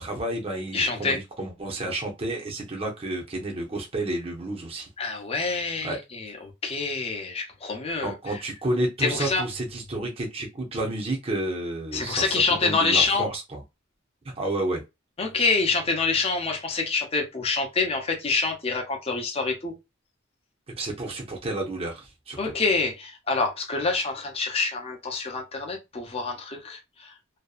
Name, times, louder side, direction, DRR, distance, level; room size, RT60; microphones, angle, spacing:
voice 1, 0.0-4.9 5.8-6.0 8.0-13.6 14.2-14.8 20.8-22.4, right 1 dB, 30° right, 0.6 m, -30 dB
voice 2, 0.7-1.2 5.0-8.4 9.0-9.4 11.9-13.3 15.2-19.7 22.4-27.1, left 4 dB, 30° left, 0.7 m, -26 dB
2.6 x 2.2 x 2.3 m
head